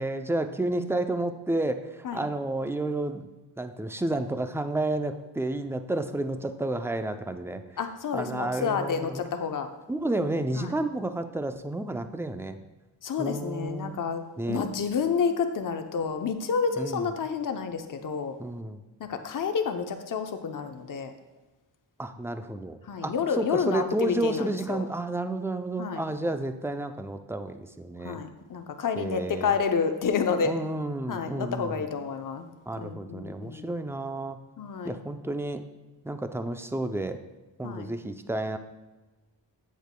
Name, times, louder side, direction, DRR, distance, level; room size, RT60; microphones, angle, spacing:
voice 1, 0.0-3.3 3.6-7.6 8.1-9.2 9.9-12.6 13.2-14.0 14.4-14.6 16.8-17.1 18.4-18.8 22.0-28.2 29.0-29.5 30.4-31.8 32.7-34.4 34.8-35.6 36.0-37.2 37.6-38.6, right 2 dB, 5° right, 8 dB, 0.4 m, -31 dB
voice 2, 7.8-9.7 10.6-10.8 13.0-18.4 19.0-21.1 22.8-24.9 25.8-26.0 28.0-30.5 31.1-32.5 32.8-33.7 34.6-35.0 37.6-37.9, left 6 dB, 45° left, 7 dB, 0.6 m, -29 dB
7.8 x 6.7 x 2.2 m, 1.2 s
cardioid pair, 60°, 45 cm